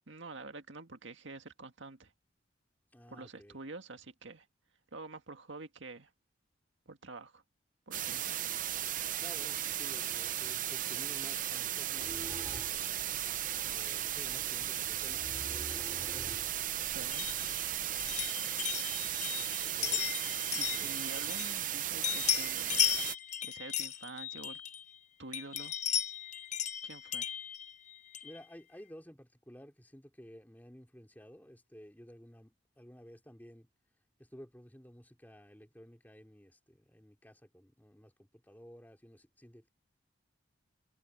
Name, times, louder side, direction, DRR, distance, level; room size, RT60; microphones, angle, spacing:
voice 1, 0.1-2.1 3.1-4.5 4.9-6.1 6.9-7.4 7.9-8.4 16.9-17.3 20.5-22.9 23.4-24.6 25.2-25.8 26.8-27.3, right 3 dB, 70° right, 1.9 m, -47 dB
voice 2, 2.9-3.6 9.2-12.7 13.7-16.5 19.6-20.1 20.7-21.0 28.2-33.7 34.2-39.7, equal, 10° left, 2.9 m, -54 dB
sound 1, 7.9-23.1, right 12 dB, 40° right, 0.7 m, -36 dB
sound 2, 12.0-18.3, equal, 15° right, 5.7 m, -50 dB
sound 3, 17.1-21.7 22.0-25.0 25.3-28.4, left 9 dB, 35° left, 0.8 m, -36 dB
head